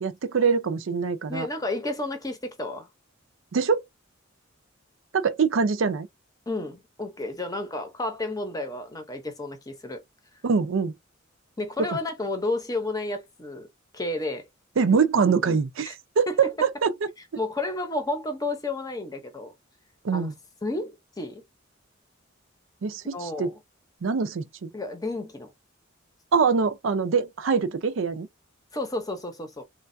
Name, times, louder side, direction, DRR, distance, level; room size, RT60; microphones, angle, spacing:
voice 1, 0.0-1.5 3.5-3.8 5.1-6.1 10.4-10.9 11.8-11.9 14.8-16.9 20.0-20.3 22.8-23.5 24.0-24.7 26.3-28.3, right 5 dB, 65° right, 0.5 m, -24 dB
voice 2, 1.3-2.9 6.5-10.0 11.6-13.7 13.9-14.5 15.9-16.0 16.3-16.4 17.4-19.5 20.1-20.3 20.6-21.4 23.1-23.6 24.7-25.5 28.7-29.6, left 2 dB, 20° left, 0.7 m, -31 dB
3.2 x 2.2 x 2.6 m
head